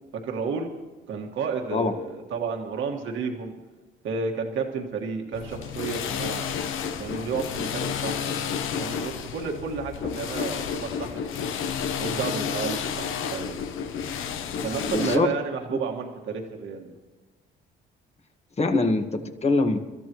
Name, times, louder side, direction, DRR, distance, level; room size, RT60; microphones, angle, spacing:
voice 1, 0.1-0.7 1.1-3.6 4.0-6.5 7.0-8.2 8.8-11.5 12.0-13.6 14.6-16.9, right 5 dB, 75° right, 1 dB, 1.8 m, -31 dB
sound 1, 5.3-15.2, left 7 dB, 85° left, 0.9 m, -31 dB
voice 2, 14.9-15.3 15.7-15.8 18.6-19.8, left 3 dB, 35° left, 6 dB, 1.6 m, -23 dB
29.5 x 13.5 x 3.1 m, 1.2 s
cardioid pair, 90°, 20 cm